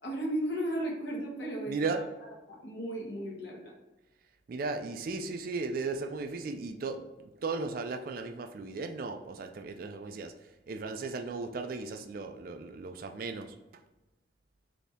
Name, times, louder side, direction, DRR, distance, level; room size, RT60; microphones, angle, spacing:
voice 1, 0.0-2.0 2.5-3.7, right 1 dB, 65° left, -2 dB, 1.1 m, -35 dB
voice 2, 1.7-2.0 4.5-7.0 7.4-13.6, right 3 dB, 50° right, 6 dB, 0.4 m, -36 dB
4.2 x 2.7 x 3.4 m, 1.0 s
head